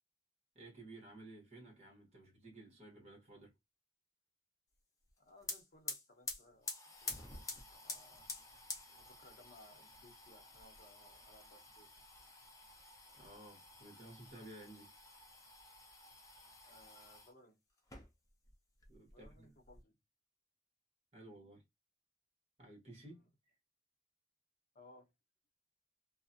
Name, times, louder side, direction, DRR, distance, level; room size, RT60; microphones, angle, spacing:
voice 1, 0.5-3.5 13.2-14.9 18.9-19.6 21.1-21.6 22.6-23.5, right 2 dB, 35° right, 1.1 m, -55 dB
sound 1, 5.1-5.2 5.4-17.3 17.8-18.5 18.8-19.8, left 3 dB, 20° left, 0.5 m, -49 dB
voice 2, 5.2-6.7 7.0-7.1 7.8-8.2 8.9-11.9 16.6-17.6 19.1-19.9 23.0-23.2 24.7-25.1, left 1 dB, 50° left, 0.8 m, -62 dB
2.4 x 2.1 x 2.5 m
head